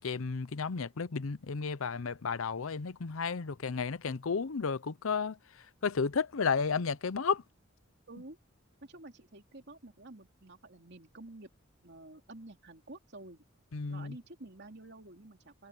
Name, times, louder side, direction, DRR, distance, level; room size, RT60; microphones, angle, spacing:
voice 1, 0.0-5.4 5.8-7.4 13.7-14.2, left 5 dB, 80° left, 0.7 m, -32 dB
voice 2, 8.8-11.5 11.8-13.4 13.9-15.7, right 2 dB, 55° right, 3.1 m, -50 dB
head